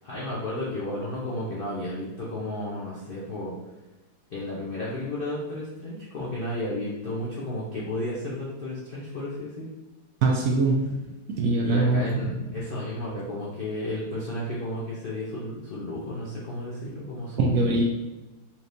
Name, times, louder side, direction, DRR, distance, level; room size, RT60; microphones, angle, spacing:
voice 1, 0.0-3.5 4.3-9.7 11.6-17.5, left 1 dB, 80° left, -6 dB, 0.5 m, -33 dB
voice 2, 10.2-12.0 17.4-17.8, right 3 dB, 90° right, -1 dB, 0.7 m, -23 dB
4.3 x 3.2 x 2.6 m, 1.1 s
omnidirectional pair, 2.1 m